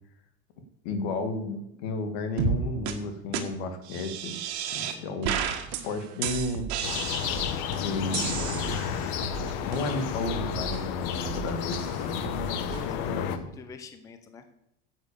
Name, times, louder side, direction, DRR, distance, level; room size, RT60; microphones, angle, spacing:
voice 1, 0.8-4.4 4.7-5.3 5.7-6.7 7.8-8.8 9.4-12.2 13.0-13.4, left 2 dB, 75° left, 8 dB, 1.9 m, -33 dB
sound 1, 2.4-2.6 2.9-3.0 3.3-3.4 3.9-5.0 5.2-5.8 6.2-7.6 8.1-9.1, right 8 dB, 75° right, 1.7 m, -31 dB
voice 2, 4.7-5.2 12.7-14.4, left 4 dB, 10° left, 9 dB, 0.6 m, -45 dB
sound 2, 5.2-13.0, right 10 dB, 60° right, 0.8 m, -40 dB
sound 3, 6.8-13.4, left 9 dB, 55° left, 1.1 m, -31 dB
9.8 x 8.3 x 6.9 m, 0.80 s
cardioid pair, 170°, 32 cm